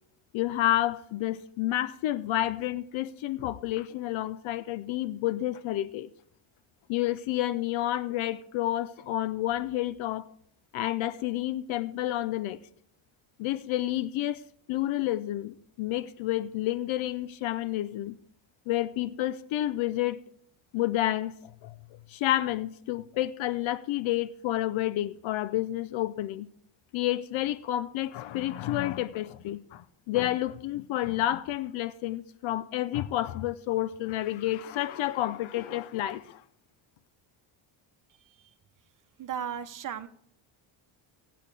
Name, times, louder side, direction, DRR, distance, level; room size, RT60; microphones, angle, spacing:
voice 1, 0.3-6.1 6.9-10.3 10.7-12.6 13.4-14.4 14.7-18.2 18.7-20.2 20.7-21.8 22.1-26.5 26.9-36.4, left 14 dB, 70° left, 0.7 m, -30 dB
voice 2, 39.2-40.1, right 8 dB, 40° right, 1.0 m, -36 dB
18.0 x 8.8 x 3.3 m
cardioid pair, 135°, 49 cm